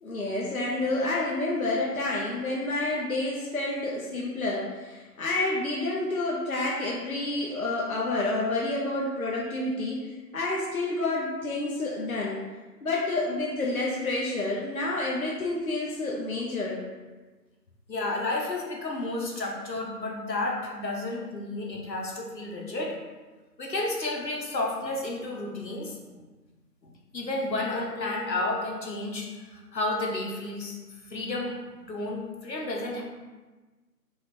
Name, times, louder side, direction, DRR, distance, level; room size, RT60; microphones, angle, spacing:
voice 1, 0.0-12.4 12.8-16.8, left 2 dB, 60° left, -4 dB, 0.7 m, -29 dB
voice 2, 17.9-22.9 23.6-25.9 26.8-30.8 31.1-33.0, left 2 dB, 80° left, -1 dB, 1.2 m, -31 dB
4.1 x 2.6 x 4.2 m, 1.3 s
figure-of-eight pair, 175°, 50 cm